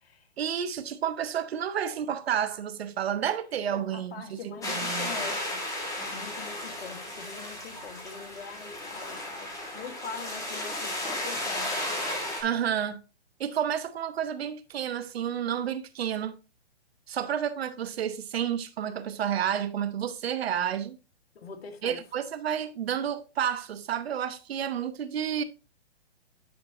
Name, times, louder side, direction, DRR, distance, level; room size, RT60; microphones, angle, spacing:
voice 1, 0.4-5.1 12.4-13.0 13.4-16.4 17.1-21.0 21.8-25.4, right 9 dB, 60° right, 1.0 m, -30 dB
voice 2, 3.7-5.6 6.0-12.0 21.3-22.0, left 5 dB, 60° left, 1.7 m, -43 dB
sound 1, 4.6-12.4, left 1 dB, 10° left, 2.0 m, -34 dB
10.5 x 4.5 x 2.9 m
hypercardioid pair, 145°, 34 cm